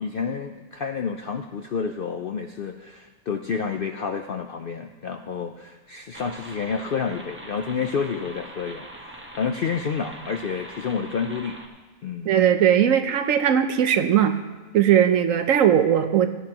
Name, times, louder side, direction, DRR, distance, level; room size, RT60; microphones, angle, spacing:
voice 1, 0.0-11.6 12.0-12.3, left 6 dB, 65° left, 6 dB, 0.5 m, -29 dB
sound 1, 6.1-11.7, right 1 dB, 10° right, 1.0 m, -42 dB
voice 2, 12.3-14.4 14.7-16.4, right 9 dB, 70° right, 9 dB, 1.0 m, -19 dB
16.5 x 12.0 x 2.9 m, 1.2 s
omnidirectional pair, 1.5 m